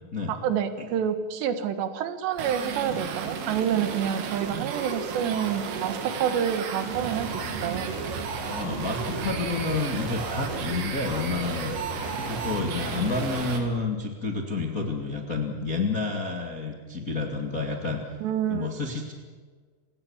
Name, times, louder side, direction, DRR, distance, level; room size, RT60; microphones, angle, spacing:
voice 1, 0.3-7.9 18.2-18.7, right 9 dB, 70° right, 10 dB, 3.4 m, -28 dB
sound 1, 2.3-13.6, right 6 dB, 90° right, 4.8 m, -33 dB
sound 2, 6.9-13.6, equal, 45° left, 6.4 m, -38 dB
voice 2, 8.4-11.9 12.3-18.0 18.5-19.1, left 3 dB, 85° left, 2 dB, 0.7 m, -30 dB
29.5 x 17.5 x 7.3 m, 1.5 s
omnidirectional pair, 5.6 m